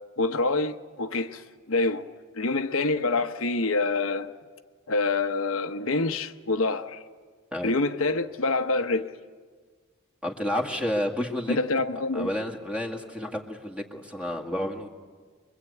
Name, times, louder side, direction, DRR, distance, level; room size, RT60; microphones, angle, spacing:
voice 1, 0.2-1.4 1.7-2.1 2.4-4.3 4.9-7.0 7.6-9.1 11.5-12.3, left 3 dB, 75° left, 1.0 m, -26 dB
voice 2, 10.2-11.6 12.1-14.9, left 1 dB, 5° right, 2.0 m, -30 dB
25.0 x 23.0 x 8.4 m
head